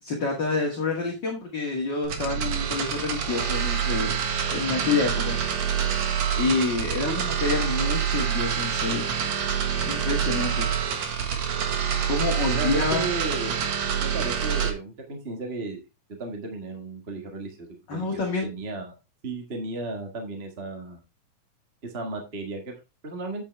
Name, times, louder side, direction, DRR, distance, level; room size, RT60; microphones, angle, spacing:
voice 1, 0.0-4.2 4.5-5.4 6.4-9.1 9.9-10.7 12.0-13.1 17.9-18.5, left 4 dB, 40° left, -1 dB, 2.3 m, -28 dB
sound 1, 2.0-14.7, right 8 dB, 60° right, 2.5 m, -26 dB
voice 2, 12.5-13.6 14.0-15.8 16.2-18.1 18.4-18.9 19.2-21.0 21.8-23.4, right 2 dB, 30° right, 2 dB, 1.1 m, -34 dB
8.7 x 8.2 x 3.3 m, 0.25 s
omnidirectional pair, 3.5 m